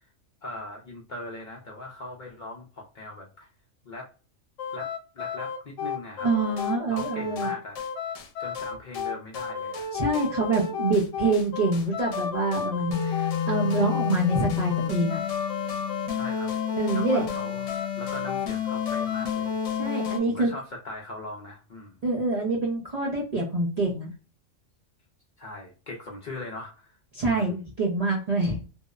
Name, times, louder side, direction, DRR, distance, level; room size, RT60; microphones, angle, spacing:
voice 1, 0.4-3.5 3.8-4.1 4.7-6.3 6.9-7.8 8.4-9.9 16.1-16.5 16.9-19.6 20.2-22.0 25.4-27.5, left 2 dB, 55° left, -1 dB, 0.5 m, -40 dB
sound 1, 4.6-20.2, left 7 dB, 80° left, 0.9 m, -30 dB
voice 2, 6.2-7.5 9.9-15.2 16.8-17.2 19.8-20.5 22.0-24.1 27.1-28.6, right 2 dB, 45° right, -2 dB, 0.5 m, -26 dB
2.7 x 2.0 x 2.3 m, 0.34 s
omnidirectional pair, 1.3 m